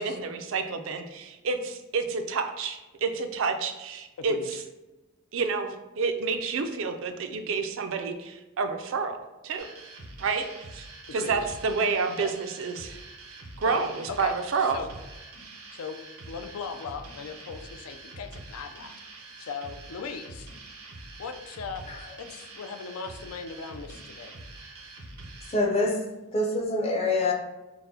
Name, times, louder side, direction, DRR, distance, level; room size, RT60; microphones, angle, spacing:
voice 1, 0.0-4.4 5.3-9.7 10.2-10.5 10.7-10.9 11.1-13.0 13.6-14.8, right 4 dB, 65° right, 0.4 m, -29 dB
voice 2, 4.2-4.5 11.2-11.5 12.2-12.3 12.9-13.0 13.6-14.9 15.7-16.0 16.3-19.0 19.4-20.5 21.2-21.8 22.2-24.3, left 5 dB, 90° left, 0.4 m, -38 dB
sound 1, 9.6-25.6, right 2 dB, 85° right, 0.8 m, -45 dB
voice 3, 25.5-26.0 26.3-27.3, left 2 dB, 30° left, 0.5 m, -25 dB
5.7 x 2.1 x 2.7 m
head